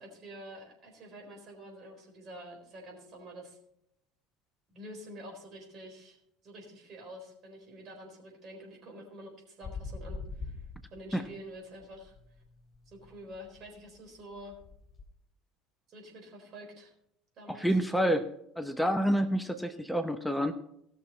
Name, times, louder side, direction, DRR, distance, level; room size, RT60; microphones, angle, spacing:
voice 1, 0.0-3.6 4.7-6.2 6.4-10.6 10.9-12.1 12.9-14.6 15.9-16.9 17.4-17.8, equal, 45° right, 2 dB, 4.1 m, -48 dB
sound 1, 9.6-11.5 11.8-15.0, left 4 dB, 25° left, 3.0 m, -44 dB
voice 2, 17.5-18.3 18.6-20.5, equal, 5° left, 9 dB, 0.8 m, -28 dB
18.0 x 6.5 x 4.3 m, 0.77 s
figure-of-eight pair, 65°, 0 cm